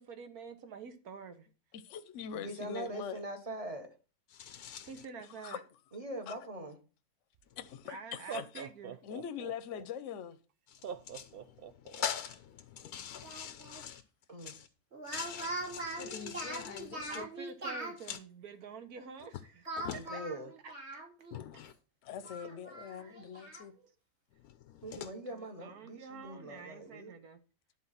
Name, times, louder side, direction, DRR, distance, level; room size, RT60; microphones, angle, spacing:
voice 1, 0.0-1.5 4.8-5.6 7.8-9.0 17.1-20.2 20.6-21.0 21.5-21.6 22.8-23.2 25.2-27.4, right 5 dB, 75° right, 1.5 m, -48 dB
voice 2, 1.7-3.2 5.4-5.6 6.3-6.4 7.6-8.6 9.0-10.4 13.8-13.9 22.1-23.7, left 8 dB, 60° left, 1.0 m, -42 dB
voice 3, 2.3-3.9 5.9-6.8 14.3-14.6 19.9-20.5 24.8-27.1, right 1 dB, 25° right, 1.2 m, -42 dB
voice 4, 4.3-4.9 10.7-10.8 11.1-11.3 11.9-14.0 14.4-14.7 15.1-17.2 18.1-18.2 19.8-20.0 21.3-21.7 24.7-25.1, left 9 dB, 90° left, 1.2 m, -42 dB
Laughter, 7.4-7.5 8.1-9.8 10.8-12.1, right 7 dB, 60° right, 0.6 m, -43 dB
Speech, 13.2-13.8 14.9-18.0 19.7-21.4 21.7-21.8 22.2-23.7, right 2 dB, 45° right, 3.0 m, -41 dB
11.0 x 4.1 x 5.7 m
omnidirectional pair, 1.6 m